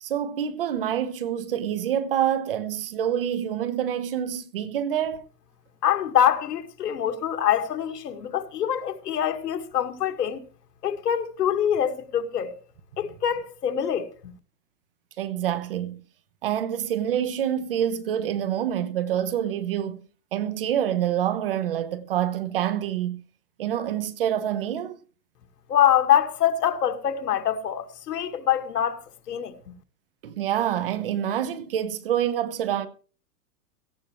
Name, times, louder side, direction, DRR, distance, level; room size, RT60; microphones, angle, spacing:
voice 1, 0.0-5.2 15.2-16.0 16.4-20.0 20.3-23.2 23.6-25.0 30.2-32.9, right 10 dB, 35° right, 0.9 m, -27 dB
voice 2, 5.8-10.4 10.8-12.5 13.0-14.1 25.7-29.0 29.3-29.5, left 10 dB, 85° left, 2.0 m, -24 dB
17.5 x 15.0 x 3.1 m
supercardioid pair, 180°, 46 cm